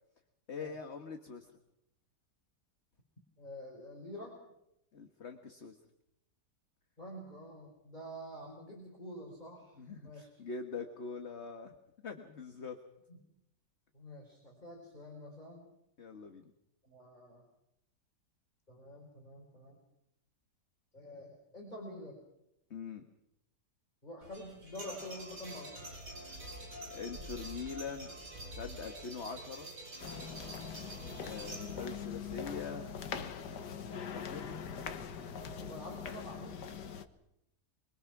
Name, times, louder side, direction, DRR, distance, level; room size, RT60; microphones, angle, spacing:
voice 1, 0.5-1.5 4.9-5.8 9.8-11.7 12.0-12.8 16.0-16.4 22.7-23.0 26.9-28.1 28.5-29.7 31.2-32.9 34.1-34.6, left 5 dB, 45° left, 5 dB, 1.7 m, -43 dB
voice 2, 3.4-4.4 7.0-10.4 13.1-13.2 13.9-15.7 16.8-17.4 18.7-19.8 20.9-22.2 24.0-25.8 35.6-36.6, equal, 25° left, -2 dB, 4.7 m, -47 dB
sound 1, 24.2-32.0, right 1 dB, 65° right, 4.8 m, -47 dB
sound 2, 30.0-37.0, left 7 dB, 90° left, 1.9 m, -42 dB
24.5 x 22.5 x 6.0 m, 0.81 s
omnidirectional pair, 1.8 m